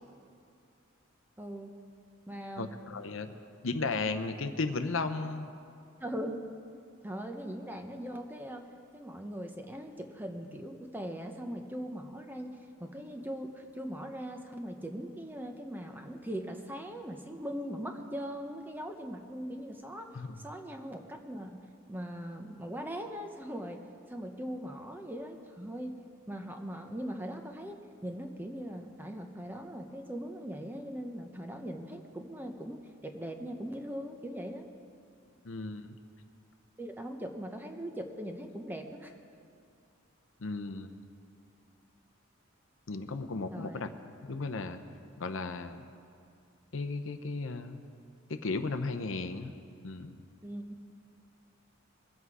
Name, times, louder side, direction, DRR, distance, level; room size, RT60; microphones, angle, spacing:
voice 1, 1.4-1.7 2.3-2.8 6.0-6.4 7.0-8.7 8.9-20.1 20.4-21.6 21.9-23.8 24.1-26.0 26.3-34.7 36.8-39.1 43.5-43.8 50.4-50.8, equal, 10° right, 4 dB, 0.8 m, -40 dB
voice 2, 2.6-3.3 3.6-5.5 20.1-20.4 35.4-36.0 40.4-40.9 42.9-43.9 44.2-44.8 45.2-45.8 46.7-47.8 48.3-49.5 49.8-50.1, left 3 dB, 65° left, 9 dB, 0.7 m, -35 dB
22.0 x 8.0 x 4.8 m, 2.4 s
head